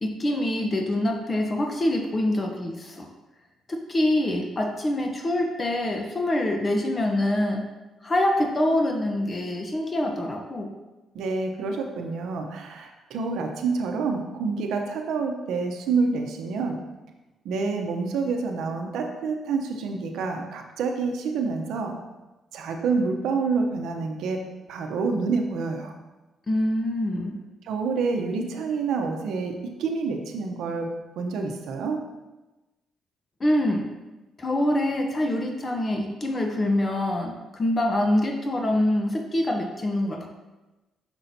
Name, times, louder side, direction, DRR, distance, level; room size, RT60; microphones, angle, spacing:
voice 1, 0.0-3.1 3.7-7.6 8.0-10.7 26.5-27.4 33.4-33.9 34.4-40.3, left 1 dB, 30° left, 2 dB, 0.8 m, -25 dB
voice 2, 11.1-16.8 17.4-21.9 22.5-24.4 24.7-26.0 27.6-30.9 31.2-32.0, right 4 dB, 80° right, 3 dB, 0.7 m, -28 dB
6.1 x 5.7 x 2.7 m, 1.1 s
cardioid pair, 90°, 0 cm